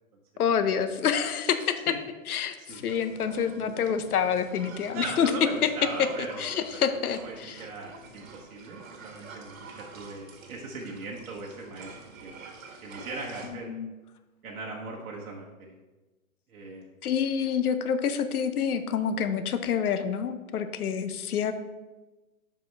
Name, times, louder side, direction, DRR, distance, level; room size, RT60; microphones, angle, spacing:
voice 1, 0.4-1.8 2.3-5.3 6.4-7.6 13.7-13.9 17.0-21.5, left 7 dB, 90° left, 10 dB, 0.8 m, -27 dB
sound 1, 2.7-13.5, right 4 dB, 65° right, 1.5 m, -48 dB
voice 2, 4.9-6.8 7.2-12.5 12.8-13.7 14.4-15.8 16.5-16.9, right 3 dB, 90° right, -2 dB, 1.3 m, -39 dB
7.3 x 6.0 x 3.4 m, 1.2 s
hypercardioid pair, 170°, 43 cm